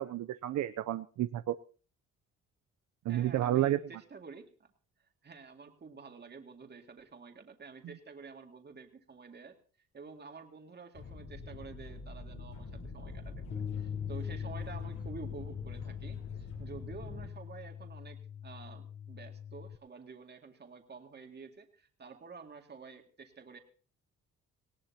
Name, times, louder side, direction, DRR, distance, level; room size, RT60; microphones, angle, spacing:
voice 1, 0.0-1.6 3.1-3.8, right 13 dB, 65° right, 12 dB, 0.6 m, -30 dB
voice 2, 3.1-4.7 5.2-9.6 9.9-23.6, right 4 dB, 35° right, 4 dB, 2.2 m, -50 dB
sound 1, 10.9-17.3, left 4 dB, 75° left, 6.7 m, -45 dB
Bass guitar, 13.5-19.8, left 8 dB, 30° left, 0.6 m, -41 dB
19.0 x 17.5 x 2.8 m, 0.39 s
cardioid pair, 90°, 30 cm